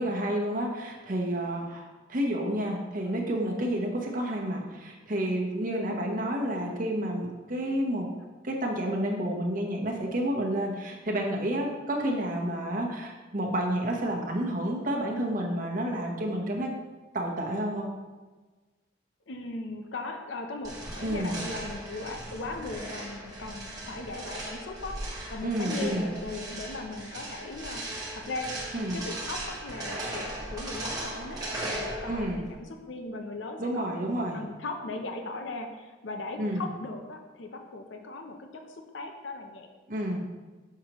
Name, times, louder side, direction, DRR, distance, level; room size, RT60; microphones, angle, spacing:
voice 1, 0.0-8.1 8.4-16.7 17.1-17.9 21.0-21.4 25.4-26.1 28.7-29.0 32.1-32.4 33.6-34.4 36.4-36.7 39.9-40.2, right 1 dB, 45° right, 0 dB, 1.0 m, -30 dB
voice 2, 19.3-25.0 25.3-27.8 28.3-33.9 34.3-39.7, left 2 dB, 70° left, 4 dB, 0.6 m, -38 dB
sound 1, 20.6-32.5, right 1 dB, 20° right, 1.1 m, -38 dB
6.3 x 5.7 x 3.0 m, 1.3 s
head